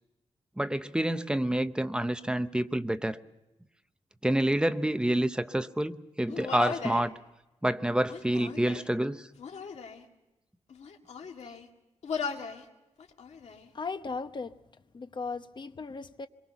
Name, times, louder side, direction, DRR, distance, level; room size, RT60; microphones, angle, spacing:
voice 1, 0.6-3.2 4.2-7.1 7.6-9.3, right 1 dB, 10° right, 0.7 m, -28 dB
Human voice, 6.3-7.1 8.0-8.9 9.4-10.0 10.7-11.7 12.0-12.6 13.0-13.7, left 6 dB, 80° left, 2.1 m, -38 dB
voice 2, 13.7-14.6 14.9-16.3, left 4 dB, 45° left, 1.0 m, -37 dB
26.0 x 23.0 x 5.8 m
wide cardioid pair, 140°, 11 cm